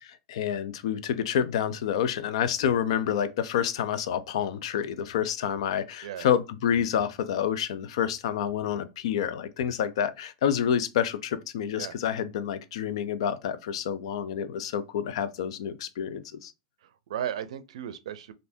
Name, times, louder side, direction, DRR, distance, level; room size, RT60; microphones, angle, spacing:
voice 1, 0.3-16.5, left 9 dB, 75° left, 0.4 m, -28 dB
voice 2, 16.8-18.3, right 10 dB, 85° right, 0.4 m, -35 dB
3.3 x 2.5 x 2.6 m
supercardioid pair, 130°, 3 cm